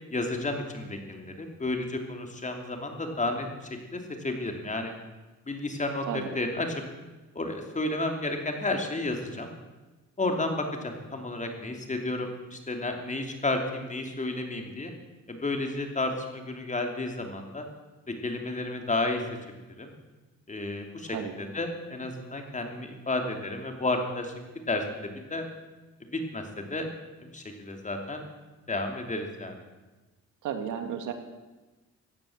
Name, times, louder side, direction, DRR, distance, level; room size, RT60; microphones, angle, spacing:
voice 1, 0.1-3.5 3.9-4.9 5.5-6.0 6.3-6.7 7.3-9.5 10.2-14.9 15.3-17.6 18.2-19.2 19.8-19.9 20.5-21.1 21.4-24.3 24.7-25.4 26.0-26.9 27.3-28.3 28.7-29.6, left 2 dB, 25° left, 4 dB, 2.9 m, -32 dB
voice 2, 30.4-31.1, right 8 dB, 80° right, 6 dB, 2.0 m, -33 dB
16.0 x 10.5 x 7.3 m, 1.2 s
cardioid pair, 90°, 30 cm